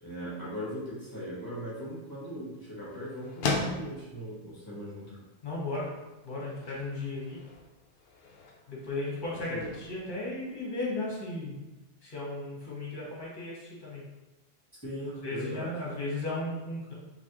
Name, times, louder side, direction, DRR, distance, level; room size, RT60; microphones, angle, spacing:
voice 1, 0.0-5.1 9.3-9.7 14.8-15.7, equal, 15° left, -9 dB, 1.3 m, -39 dB
sound 1, 1.4-11.2, left 3 dB, 60° left, 0.6 m, -40 dB
voice 2, 5.4-5.9 6.2-7.4 8.7-11.6 12.0-14.0 15.2-16.9, left 2 dB, 40° left, -5 dB, 1.3 m, -35 dB
4.0 x 3.0 x 2.9 m, 1.0 s
omnidirectional pair, 1.3 m